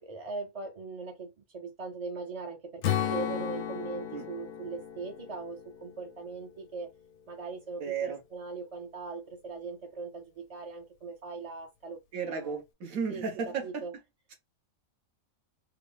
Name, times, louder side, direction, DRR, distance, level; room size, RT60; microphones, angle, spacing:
voice 1, 0.0-6.9 7.3-12.6 13.1-13.2 13.6-13.9, right 4 dB, 50° right, 0.4 m, -40 dB
Strum, 2.8-7.0, left 10 dB, 80° left, 1.0 m, -35 dB
voice 2, 7.8-8.2 12.1-13.9, right 6 dB, 90° right, 1.5 m, -34 dB
3.6 x 2.0 x 3.3 m
omnidirectional pair, 1.4 m